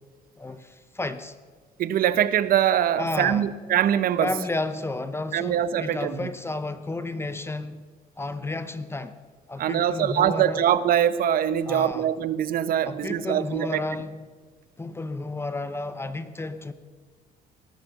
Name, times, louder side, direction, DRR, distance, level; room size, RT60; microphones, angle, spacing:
voice 1, 0.4-1.3 3.0-3.5 4.2-7.8 8.2-9.2 9.5-10.6 11.7-12.1 12.9-14.2 14.8-16.7, left 2 dB, 15° left, 0.8 m, -32 dB
voice 2, 1.8-4.3 5.3-6.3 9.6-13.8, right 10 dB, 60° right, 0.9 m, -23 dB
19.0 x 11.0 x 6.6 m
cardioid pair, 110°, 17 cm